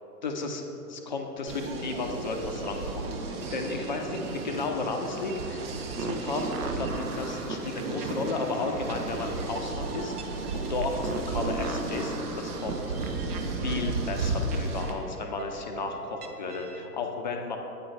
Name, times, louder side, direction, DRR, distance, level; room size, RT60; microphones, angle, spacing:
voice 1, 0.2-5.6 6.0-13.1 13.6-17.6, left 3 dB, 30° left, 3 dB, 0.4 m, -34 dB
sound 1, 1.5-14.9, right 3 dB, 40° right, 0.7 m, -34 dB
sound 2, 6.0-16.9, right 3 dB, 75° right, 0.8 m, -37 dB
sound 3, 7.0-13.2, right 2 dB, 5° right, 1.5 m, -49 dB
8.6 x 4.4 x 4.0 m, 2.9 s
figure-of-eight pair, 120°, 47 cm